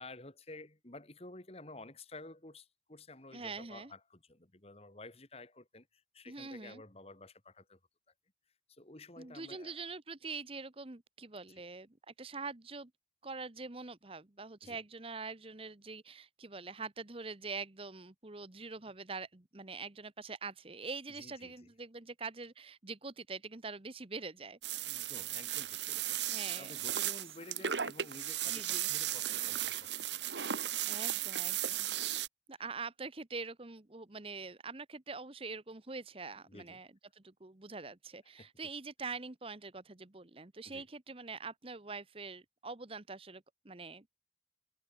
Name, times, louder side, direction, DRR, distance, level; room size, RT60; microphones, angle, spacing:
voice 1, 0.0-7.8 8.7-9.8 11.5-11.6 14.6-14.8 21.2-21.7 24.8-30.5 36.5-36.8 38.4-38.5 40.6-40.8, left 2 dB, 35° left, 2.5 m, -52 dB
voice 2, 3.3-3.9 6.3-6.8 9.2-12.9 13.2-24.6 26.3-26.7 28.5-28.9 30.9-31.9 32.5-36.9 37.1-44.0, right 4 dB, 30° right, 1.1 m, -44 dB
sound 1, 24.6-32.3, right 11 dB, 85° right, 1.3 m, -36 dB
head